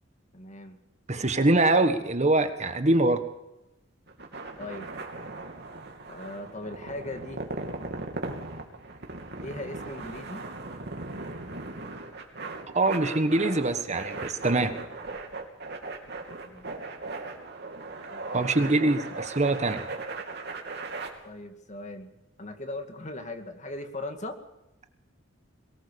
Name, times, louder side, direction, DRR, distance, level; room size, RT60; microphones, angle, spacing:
voice 1, 0.3-0.8 4.6-4.9 6.1-7.5 9.4-10.4 16.4-16.8 18.1-18.9 21.2-22.1 22.4-24.4, left 2 dB, 40° left, 6 dB, 2.2 m, -39 dB
voice 2, 1.1-3.2 12.7-14.7 18.3-19.8, right 2 dB, 35° right, 9 dB, 1.4 m, -23 dB
sound 1, 4.1-21.1, right 3 dB, 60° right, 3.2 m, -38 dB
22.5 x 19.0 x 7.0 m, 0.91 s
head